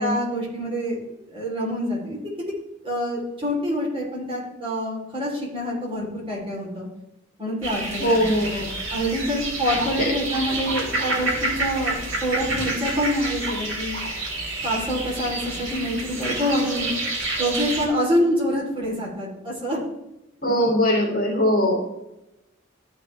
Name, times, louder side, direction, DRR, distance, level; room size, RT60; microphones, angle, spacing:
voice 1, 0.0-2.2 2.8-6.9 7.4-8.3 8.9-14.0 14.6-16.9 17.4-19.8, equal, 25° right, -4 dB, 3.3 m, -26 dB
sound 1, 7.6-17.9, right 2 dB, 75° right, 3.5 m, -29 dB
voice 2, 8.0-8.8 10.0-10.1 20.4-21.8, equal, 50° left, -1 dB, 2.6 m, -21 dB
13.0 x 5.9 x 3.3 m, 0.91 s
head